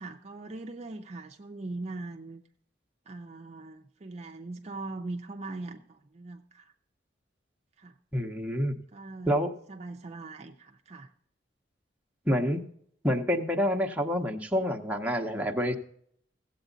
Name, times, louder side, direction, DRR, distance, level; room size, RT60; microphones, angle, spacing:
voice 1, 0.0-2.4 3.1-6.7 7.8-7.9 8.9-9.3 9.7-11.1, right 2 dB, 35° right, 4 dB, 0.5 m, -41 dB
voice 2, 8.1-8.7 9.3-9.5 12.3-12.6 13.0-15.7, equal, 10° right, 2 dB, 0.8 m, -27 dB
15.5 x 8.1 x 3.9 m, 0.67 s
head